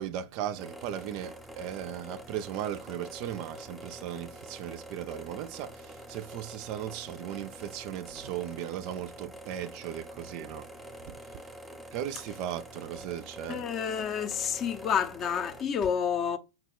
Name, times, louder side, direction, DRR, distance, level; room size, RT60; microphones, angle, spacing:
voice 1, 0.0-11.4 11.9-13.7, right 10 dB, 45° right, 0.3 m, -37 dB
sound 1, 0.6-15.6, equal, 5° right, 0.6 m, -46 dB
voice 2, 13.5-16.4, left 7 dB, 30° left, 0.5 m, -29 dB
5.6 x 2.2 x 3.5 m
figure-of-eight pair, 90°, 0 cm